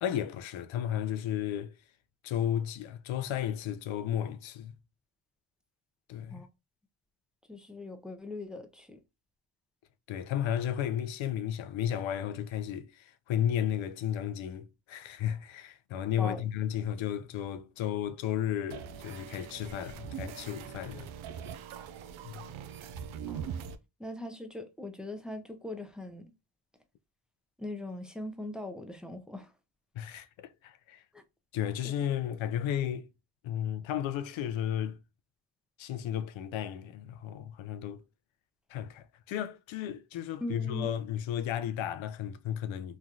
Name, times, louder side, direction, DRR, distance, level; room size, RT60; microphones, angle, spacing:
voice 1, 0.0-1.8 2.2-4.7 6.1-6.4 10.1-21.1 22.2-22.4 30.0-31.0 31.5-33.1 33.4-35.0 35.8-38.0 38.7-43.0, left 10 dB, 75° left, 0.6 m, -33 dB
voice 2, 7.5-9.0 16.2-16.4 23.3-23.6 24.0-26.2 27.6-29.5 31.1-31.2 31.8-31.9 40.4-40.9, left 1 dB, ahead, 0.6 m, -40 dB
sound 1, 18.7-23.8, right 8 dB, 80° right, 0.5 m, -42 dB
3.1 x 2.2 x 2.5 m
supercardioid pair, 55°, 47 cm